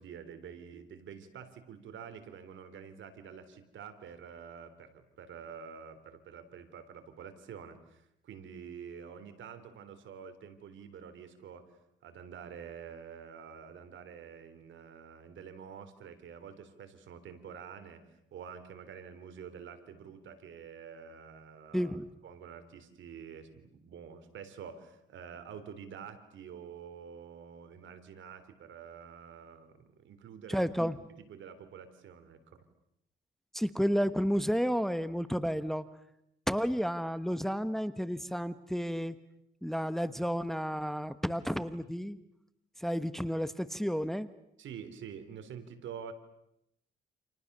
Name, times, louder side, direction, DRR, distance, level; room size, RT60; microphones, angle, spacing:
voice 1, 0.0-18.0 18.3-21.9 22.2-30.7 31.1-32.6 44.6-46.1, right 7 dB, 70° right, 10 dB, 3.6 m, -48 dB
voice 2, 21.7-22.0 30.5-31.0 33.5-35.8 36.5-39.2 39.6-42.2 42.8-44.3, equal, ahead, 13 dB, 1.3 m, -31 dB
29.5 x 28.5 x 6.8 m, 0.79 s
cardioid pair, 90°, 20 cm